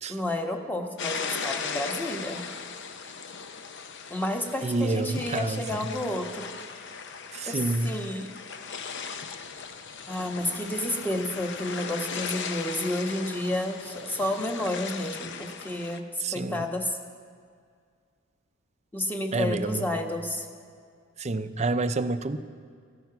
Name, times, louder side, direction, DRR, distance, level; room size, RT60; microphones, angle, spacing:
voice 1, 0.1-2.5 4.1-6.5 7.5-8.3 9.4-9.5 10.1-16.0 16.3-17.0 18.9-20.5, left 1 dB, 10° left, 3 dB, 1.2 m, -31 dB
sound 1, 1.0-16.0, left 6 dB, 60° left, 0.8 m, -38 dB
voice 2, 4.6-5.8 7.3-7.9 16.2-16.6 19.3-19.9 21.2-22.4, right 3 dB, 35° right, 11 dB, 0.6 m, -28 dB
14.0 x 13.5 x 5.9 m, 2.1 s
head